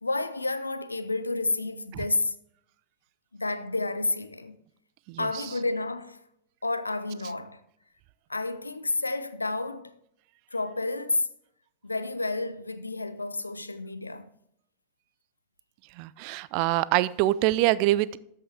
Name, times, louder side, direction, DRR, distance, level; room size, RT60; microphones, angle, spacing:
voice 1, 0.0-2.3 3.3-4.6 5.2-6.2 6.6-7.6 8.3-9.9 10.5-11.3 11.8-14.3, left 2 dB, 80° left, 0.5 m, -30 dB
voice 2, 16.0-18.2, right 16 dB, 45° right, 0.3 m, -24 dB
13.0 x 5.5 x 3.4 m
figure-of-eight pair, 90°, 0 cm